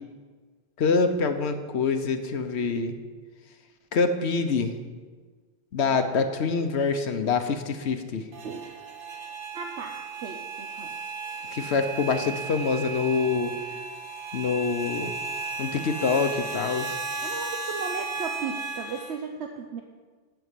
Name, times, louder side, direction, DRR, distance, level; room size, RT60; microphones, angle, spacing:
voice 1, 0.8-2.9 3.9-4.7 5.7-8.2 11.5-13.5 14.3-15.1 15.6-17.0, left 4 dB, 80° left, 7 dB, 1.1 m, -25 dB
sound 1, 8.3-19.1, right 3 dB, 55° right, 1.1 m, -35 dB
voice 2, 8.4-8.7 9.5-10.9 14.8-14.9 17.2-19.8, right 5 dB, 85° right, 3 dB, 1.1 m, -36 dB
12.5 x 4.5 x 8.3 m, 1.4 s
omnidirectional pair, 1.1 m